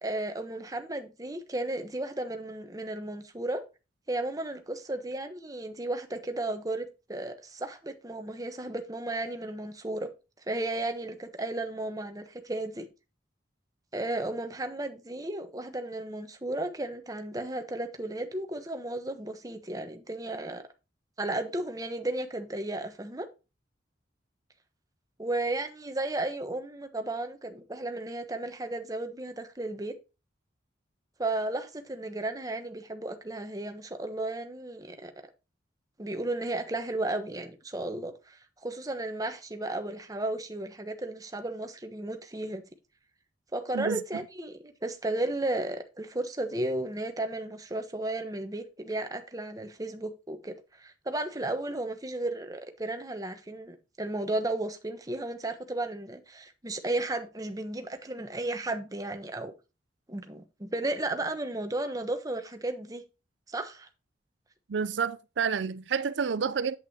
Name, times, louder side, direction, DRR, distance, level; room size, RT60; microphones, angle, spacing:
voice 1, 0.0-3.6 4.1-10.1 10.5-12.9 13.9-20.6 21.2-23.3 25.2-29.9 31.2-35.1 36.0-42.6 43.5-59.5 60.1-63.0 63.5-63.9, right 2 dB, 20° right, 1.1 m, -34 dB
voice 2, 64.7-66.8, right 6 dB, 80° right, 0.5 m, -29 dB
8.3 x 8.2 x 2.9 m
head